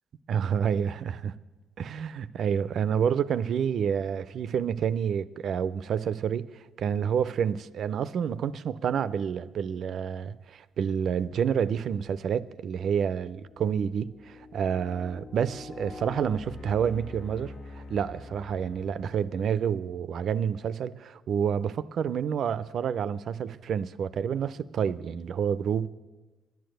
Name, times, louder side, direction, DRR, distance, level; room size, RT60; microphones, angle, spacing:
voice 1, 0.3-1.3 1.8-25.9, right 7 dB, 65° right, 0.5 m, -29 dB
sound 1, 13.1-19.6, left 3 dB, 65° left, 1.5 m, -45 dB
11.0 x 10.5 x 7.8 m
cardioid pair, 90°, 0 cm